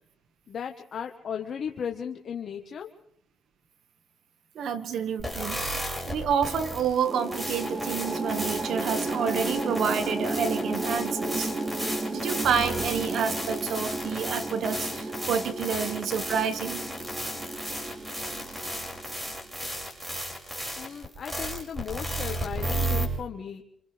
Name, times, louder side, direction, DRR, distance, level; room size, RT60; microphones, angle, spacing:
voice 1, 0.5-2.9 20.8-23.6, left 7 dB, 55° left, 3 dB, 1.4 m, -36 dB
voice 2, 4.6-5.6 6.1-11.5 12.1-16.8, right 7 dB, 70° right, 10 dB, 1.7 m, -29 dB
sound 1, 5.2-23.1, right 1 dB, 15° right, 6.3 m, -34 dB
sound 2, 7.1-19.4, right 2 dB, 30° right, 3.5 m, -33 dB
27.5 x 27.5 x 3.5 m, 0.71 s
cardioid pair, 90°, 0 cm